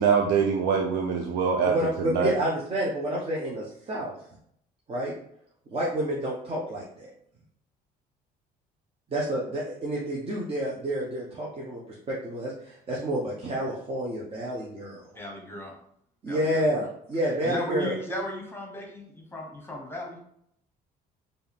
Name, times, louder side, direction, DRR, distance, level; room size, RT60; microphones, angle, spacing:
voice 1, 0.0-1.8 2.0-2.3, right 6 dB, 80° right, 2 dB, 0.5 m, -23 dB
voice 2, 1.7-4.1 4.9-5.1 5.7-7.1 9.1-11.8 12.1-15.0 16.2-17.9, right 1 dB, 35° right, -4 dB, 0.9 m, -29 dB
voice 3, 15.1-15.7 16.3-16.8 17.4-20.2, left 1 dB, 15° left, 0 dB, 1.1 m, -35 dB
4.5 x 2.6 x 3.5 m, 0.71 s
cardioid pair, 110°, 17 cm